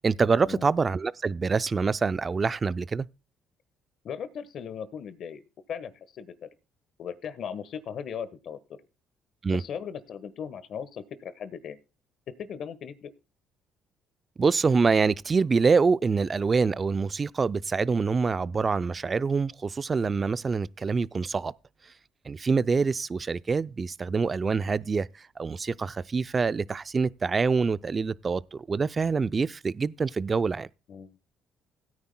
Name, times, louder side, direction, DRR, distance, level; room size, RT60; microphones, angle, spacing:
voice 1, 0.0-3.1 9.4-9.6 14.4-21.5 22.3-25.1 25.4-30.7, right 4 dB, 35° right, 0.4 m, -25 dB
voice 2, 4.0-5.4 5.7-6.5 7.0-8.6 9.5-11.8 12.4-13.1 30.9-31.2, left 7 dB, 60° left, 1.3 m, -38 dB
17.0 x 9.6 x 2.2 m
supercardioid pair, 75°, 0 cm